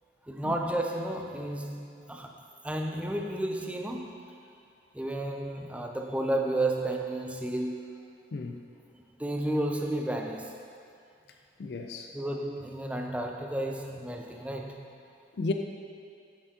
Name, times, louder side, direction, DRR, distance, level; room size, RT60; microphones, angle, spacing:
voice 1, 0.3-2.3 2.6-4.3 4.9-7.9 9.2-10.6 12.1-14.9, right 1 dB, 5° right, 2 dB, 0.4 m, -32 dB
voice 2, 8.3-8.6 11.6-12.1 15.3-15.5, left 3 dB, 65° left, 4 dB, 0.4 m, -33 dB
8.4 x 6.9 x 2.8 m, 2.4 s
head